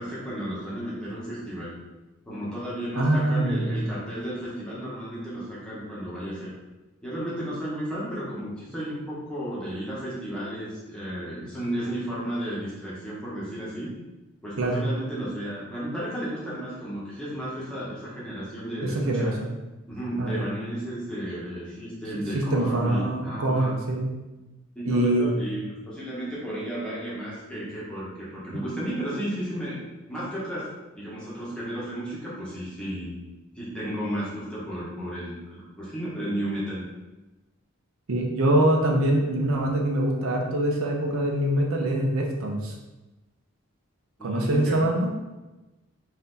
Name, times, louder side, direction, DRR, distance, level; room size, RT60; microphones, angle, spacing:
voice 1, 0.0-1.7 2.2-6.5 7.0-13.9 14.4-19.3 19.9-23.8 24.7-29.8 30.1-33.2 33.5-36.8 44.2-44.8, right 1 dB, 5° left, -8 dB, 1.2 m, -33 dB
voice 2, 3.0-3.8 14.6-14.8 18.8-19.5 20.2-20.5 22.3-24.1 24.8-25.3 38.1-42.7 44.2-45.1, right 1 dB, 75° right, 0 dB, 0.7 m, -24 dB
4.2 x 2.7 x 4.0 m, 1.1 s
head